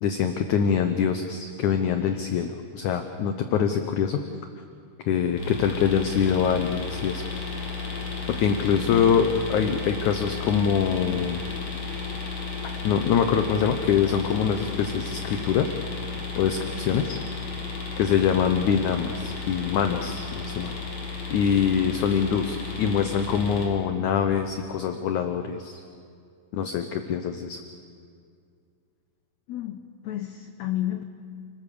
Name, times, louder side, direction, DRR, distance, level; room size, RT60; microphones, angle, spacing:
voice 1, 0.0-4.2 5.1-7.2 8.3-11.4 12.8-15.7 16.4-17.2 18.0-20.7 21.3-25.8 26.5-27.6, left 7 dB, 70° left, 7 dB, 2.0 m, -24 dB
sound 1, 5.4-23.7, left 4 dB, 50° left, 5.0 m, -33 dB
voice 2, 29.5-31.0, left 13 dB, 90° left, 8 dB, 1.5 m, -32 dB
29.5 x 20.0 x 6.9 m, 2.3 s
omnidirectional pair, 4.3 m